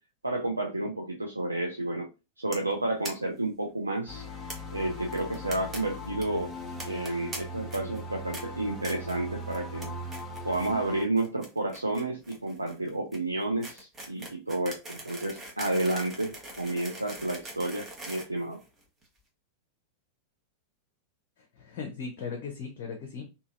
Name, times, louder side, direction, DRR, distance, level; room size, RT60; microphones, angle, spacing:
voice 1, 0.2-2.1 2.4-4.3 4.7-6.5 6.9-9.9 10.4-18.6, right 2 dB, 85° right, 1 dB, 0.3 m, -31 dB
sound 1, 2.5-2.7 3.0-3.1 3.4-3.5 3.7-3.8 4.5-4.6 5.1-5.8 6.0-6.2 6.8-7.4 7.7-8.0 8.3-8.4 8.8-9.2 9.5-9.9 10.1-10.7 11.0-19.0, right 2 dB, 20° right, 0.9 m, -42 dB
sound 2, 4.1-11.0, left 1 dB, 15° left, 0.8 m, -39 dB
voice 2, 21.4-23.2, left 5 dB, 45° left, 2 dB, 0.6 m, -38 dB
2.6 x 2.6 x 2.4 m, 0.29 s
figure-of-eight pair, 90°, 0 cm